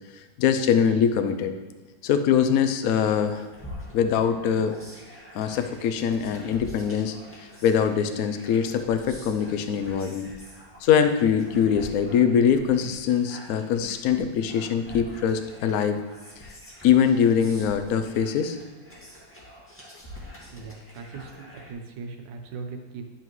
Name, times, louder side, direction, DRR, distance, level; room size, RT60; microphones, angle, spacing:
voice 1, 0.4-1.5 2.0-3.5 3.9-4.8 5.3-7.1 7.4-10.3 10.8-16.0 16.8-18.6, left 7 dB, 65° left, 8 dB, 0.9 m, -23 dB
sound 1, 3.5-21.7, left 1 dB, 5° left, 1.7 m, -46 dB
voice 2, 20.5-23.0, right 4 dB, 80° right, 4 dB, 1.6 m, -39 dB
11.5 x 5.5 x 3.1 m, 1.3 s
omnidirectional pair, 1.9 m